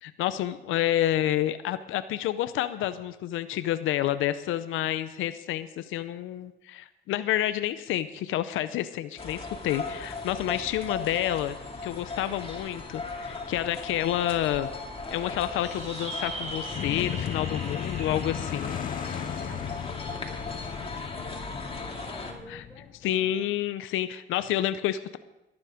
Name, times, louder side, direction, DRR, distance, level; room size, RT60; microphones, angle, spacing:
voice 1, 0.0-11.6 11.8-14.7 15.1-18.8 22.5-22.6 23.0-25.2, left 12 dB, 90° left, 13 dB, 0.6 m, -29 dB
sound 1, 9.2-22.3, left 3 dB, 30° left, 2.5 m, -37 dB
sound 2, 15.6-20.4, right 1 dB, 35° right, 2.7 m, -41 dB
sound 3, 16.7-23.3, left 10 dB, 45° left, 0.4 m, -36 dB
voice 2, 17.4-17.9 18.3-18.5 19.4-23.5, equal, ahead, 0 dB, 4.2 m, -50 dB
18.5 x 9.6 x 5.0 m, 0.98 s
cardioid pair, 90°, 20 cm